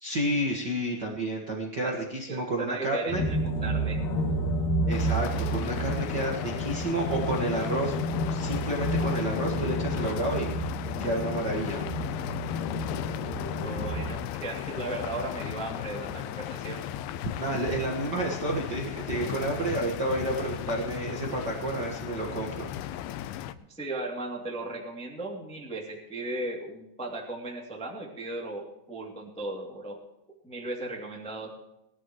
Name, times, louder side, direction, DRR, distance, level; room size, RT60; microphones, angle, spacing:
voice 1, 0.0-3.2 4.9-7.9 8.3-10.5 11.0-11.8 17.4-22.7, right 2 dB, 75° right, -1 dB, 0.9 m, -30 dB
voice 2, 2.3-4.0 10.1-10.2 13.5-16.8 17.5-17.6 23.7-30.0 30.4-31.5, right 2 dB, 5° left, 0 dB, 1.3 m, -36 dB
sound 1, 3.1-14.1, equal, 55° left, 2.0 m, -30 dB
sound 2, 4.9-23.5, left 12 dB, 80° left, 2.4 m, -36 dB
19.5 x 12.5 x 3.1 m, 0.88 s
omnidirectional pair, 4.8 m